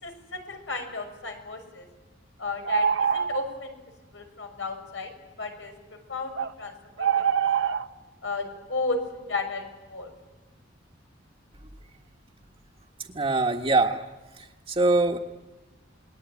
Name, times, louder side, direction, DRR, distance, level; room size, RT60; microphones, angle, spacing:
voice 1, 0.0-1.9 2.4-3.8 4.1-5.1 5.4-5.7 6.1-7.6 8.2-9.0 9.3-9.6 9.9-10.1, left 3 dB, 75° left, 5 dB, 6.3 m, -33 dB
sound 1, 2.6-3.6 6.4-6.5 7.0-7.9, right 7 dB, 80° right, 0.9 m, -24 dB
voice 2, 13.1-14.0 14.3-15.2, right 2 dB, 30° right, -1 dB, 1.6 m, -23 dB
28.5 x 21.5 x 9.7 m, 1.2 s
head